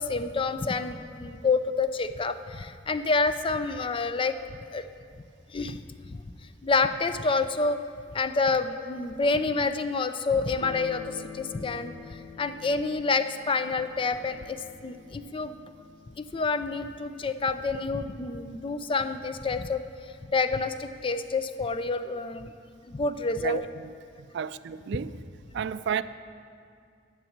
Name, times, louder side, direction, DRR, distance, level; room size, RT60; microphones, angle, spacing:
voice 1, 0.0-4.4 4.7-4.8 5.5-5.8 6.6-7.8 8.1-14.6 14.8-15.6 16.2-19.8 20.3-22.5 22.9-23.6, left 3 dB, 30° left, 0.4 m, -28 dB
sound 1, 10.6-19.5, left 5 dB, 80° left, 0.8 m, -48 dB
voice 2, 23.4-23.9 24.3-25.2 25.5-26.0, right 7 dB, 65° right, 0.3 m, -32 dB
11.0 x 6.1 x 8.6 m
head